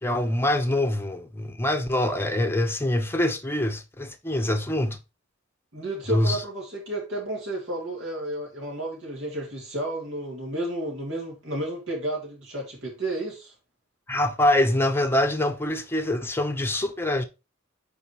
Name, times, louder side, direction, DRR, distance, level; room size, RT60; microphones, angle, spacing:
voice 1, 0.0-5.0 6.1-6.4 14.1-17.2, left 1 dB, 10° left, 0.9 m, -24 dB
voice 2, 5.7-13.5, right 1 dB, 65° right, 2.7 m, -32 dB
9.0 x 4.1 x 3.0 m
head